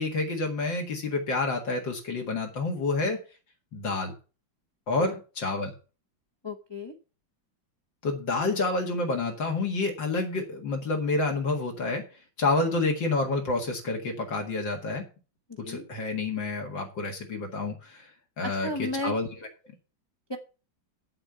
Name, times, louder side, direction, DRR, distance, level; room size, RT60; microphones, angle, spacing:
voice 1, 0.0-3.2 3.7-4.1 4.9-5.7 8.0-12.0 12.4-15.0 15.7-18.1 18.4-19.3, left 3 dB, 70° left, 1 dB, 2.6 m, -28 dB
voice 2, 6.4-6.9 15.6-15.8 18.4-19.1 20.3-20.4, left 1 dB, 25° left, 3 dB, 0.6 m, -33 dB
8.0 x 7.6 x 6.8 m, 0.35 s
omnidirectional pair, 2.1 m